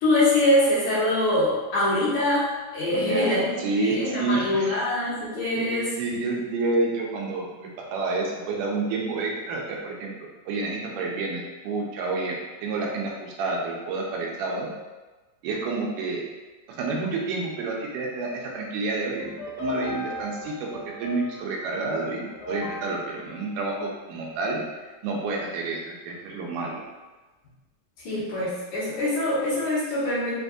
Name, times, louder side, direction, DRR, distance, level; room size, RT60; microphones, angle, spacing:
voice 1, 0.0-5.9 28.0-30.3, left 1 dB, 60° left, -11 dB, 2.7 m, -24 dB
voice 2, 2.9-4.7 5.6-10.1 10.5-14.7 15.4-16.2 16.7-24.6 25.0-26.8, right 3 dB, 80° right, -1 dB, 2.1 m, -29 dB
sound 1, 19.2-24.5, left 2 dB, 85° left, 2.5 m, -38 dB
5.9 x 2.6 x 2.4 m, 1.2 s
omnidirectional pair, 4.1 m